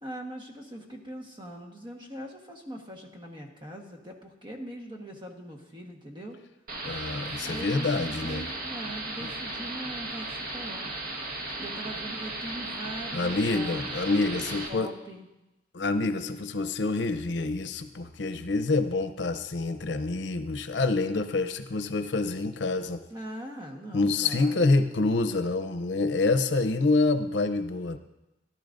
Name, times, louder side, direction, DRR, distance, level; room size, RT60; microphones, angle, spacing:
voice 1, 0.0-6.4 7.4-10.9 11.6-15.3 23.1-24.7, right 1 dB, 30° right, 2 dB, 1.3 m, -41 dB
sound 1, 6.7-14.7, right 2 dB, 55° right, 1.3 m, -36 dB
voice 2, 6.8-8.4 13.1-14.9 15.7-23.0 23.9-28.0, left 3 dB, 85° left, 10 dB, 0.6 m, -27 dB
14.0 x 11.5 x 2.6 m, 0.97 s
head